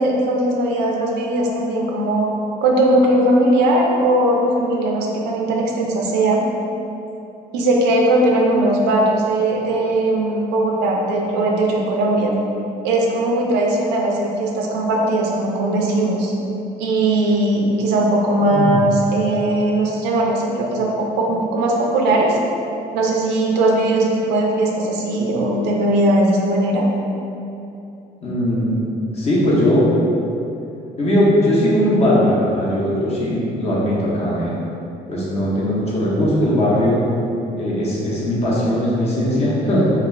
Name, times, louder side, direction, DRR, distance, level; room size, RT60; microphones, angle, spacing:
voice 1, 0.0-2.3 2.6-6.4 7.5-12.3 12.8-16.3 16.8-22.4 22.9-26.8, right 1 dB, 90° right, -1 dB, 0.5 m, -19 dB
voice 2, 28.2-28.8 29.1-29.9 31.0-34.6 35.1-37.0 37.6-39.9, equal, 40° left, -6 dB, 0.7 m, -19 dB
2.3 x 2.3 x 3.1 m, 2.8 s
cardioid pair, 110°, 17 cm